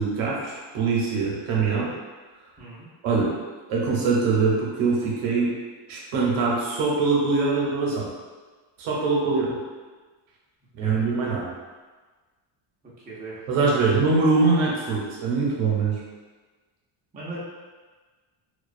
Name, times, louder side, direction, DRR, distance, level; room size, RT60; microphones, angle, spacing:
voice 1, 0.0-1.9 3.0-3.3 3.7-5.5 5.9-8.1 8.8-9.6 10.8-11.5 13.5-16.0, right 4 dB, 70° right, -3 dB, 0.7 m, -23 dB
voice 2, 2.6-2.9 5.3-5.6 10.8-11.0 13.0-13.6 17.1-17.5, right 1 dB, 20° right, -8 dB, 0.4 m, -38 dB
2.3 x 2.2 x 2.4 m, 1.4 s
cardioid pair, 150°, 50 cm